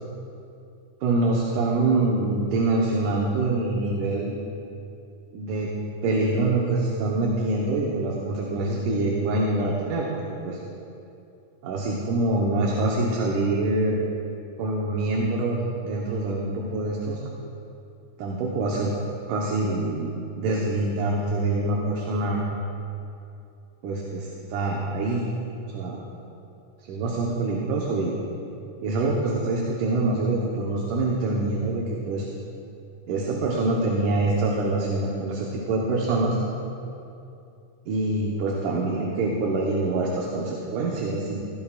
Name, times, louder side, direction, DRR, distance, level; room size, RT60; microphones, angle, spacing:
voice 1, 1.0-4.4 5.3-5.7 6.0-10.6 11.6-14.0 14.6-17.2 18.2-18.9 19.3-22.4 23.8-25.3 25.7-26.0 26.8-28.2 28.8-32.3 33.1-36.4 37.9-41.4, right 2 dB, 75° right, -3 dB, 2.6 m, -25 dB
17.0 x 16.5 x 2.5 m, 2.6 s
omnidirectional pair, 3.9 m